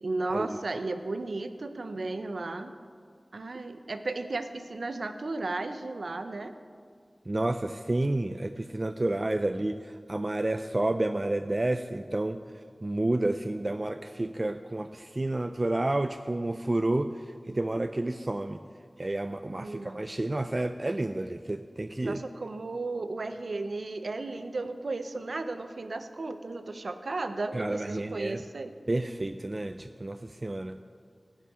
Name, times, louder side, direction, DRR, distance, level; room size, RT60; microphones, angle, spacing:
voice 1, 0.0-2.7 3.3-6.5 19.5-20.1 22.0-28.7, right 2 dB, 90° right, 9 dB, 0.6 m, -34 dB
voice 2, 7.3-12.4 12.8-18.6 19.0-22.2 27.5-28.4 28.9-30.8, right 2 dB, 40° right, 8 dB, 0.3 m, -30 dB
15.5 x 5.6 x 6.2 m, 2.1 s
wide cardioid pair, 70°, 0 cm